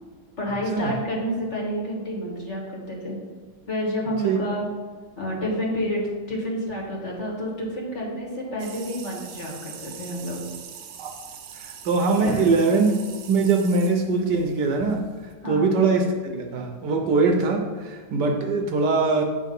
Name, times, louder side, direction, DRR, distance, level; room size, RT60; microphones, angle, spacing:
voice 1, 0.4-3.2 3.7-4.6 5.2-10.4 12.3-12.5 15.4-15.8, equal, 40° left, -2 dB, 1.6 m, -29 dB
sound 1, 8.6-15.3, right 7 dB, 85° right, 1.5 m, -43 dB
voice 2, 11.5-13.0 13.3-15.1 15.5-19.2, right 4 dB, 70° right, 3 dB, 1.2 m, -22 dB
8.3 x 3.8 x 5.3 m, 1.5 s
omnidirectional pair, 2.1 m